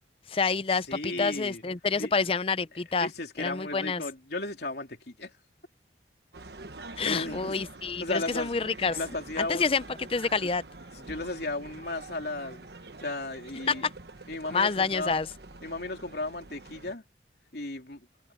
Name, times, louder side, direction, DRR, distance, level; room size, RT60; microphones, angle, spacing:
voice 1, 0.3-3.1 3.4-4.0 7.0-9.0 9.4-10.6 13.7-13.8 14.5-15.3, left 4 dB, 30° left, 0.5 m, -28 dB
voice 2, 0.9-1.6 2.0-2.1 3.0-5.3 7.0-7.6 8.0-8.6 8.9-9.7 11.0-12.7 13.0-13.8 14.3-15.2 15.6-17.0 17.5-18.0, left 2 dB, 65° left, 3.2 m, -35 dB
sound 1, 6.3-17.0, right 2 dB, 65° right, 1.3 m, -46 dB
head